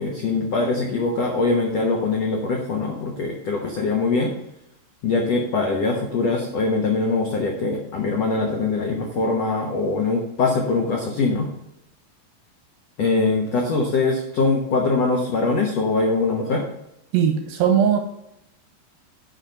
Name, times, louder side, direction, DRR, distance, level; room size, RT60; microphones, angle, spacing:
voice 1, 0.0-4.3 5.0-11.5 13.0-16.6, left 3 dB, 80° left, 1 dB, 1.4 m, -22 dB
voice 2, 17.1-18.0, right 8 dB, 75° right, 6 dB, 2.3 m, -19 dB
10.5 x 4.9 x 6.9 m, 0.83 s
omnidirectional pair, 4.9 m